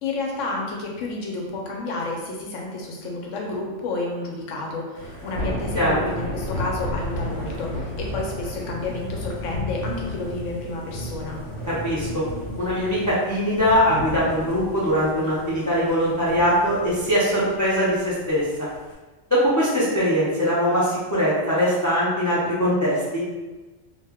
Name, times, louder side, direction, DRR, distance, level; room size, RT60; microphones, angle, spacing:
voice 1, 0.0-11.4, left 2 dB, 90° left, -1 dB, 1.0 m, -30 dB
Thunder / Rain, 4.9-18.9, left 1 dB, 65° left, 1.0 m, -33 dB
voice 2, 11.7-12.2 12.6-18.7 19.3-23.2, equal, 30° left, -9 dB, 0.3 m, -21 dB
2.4 x 2.2 x 3.4 m, 1.2 s
omnidirectional pair, 1.3 m